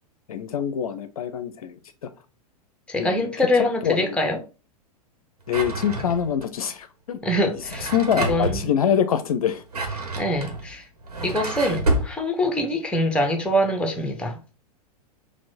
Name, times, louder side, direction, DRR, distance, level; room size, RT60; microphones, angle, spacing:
voice 1, 0.3-2.1 3.0-3.3 3.8-4.2 5.5-7.2 7.9-9.6, left 8 dB, 65° left, 0.5 m, -25 dB
voice 2, 2.9-4.4 7.2-8.6 10.2-10.8 11.2-14.4, left 1 dB, 5° left, 0.8 m, -24 dB
Drawer open or close, 5.5-6.4 7.5-8.6 9.5-12.1, right 2 dB, 70° right, 1.3 m, -28 dB
4.4 x 2.3 x 4.2 m
figure-of-eight pair, 100°, 20 cm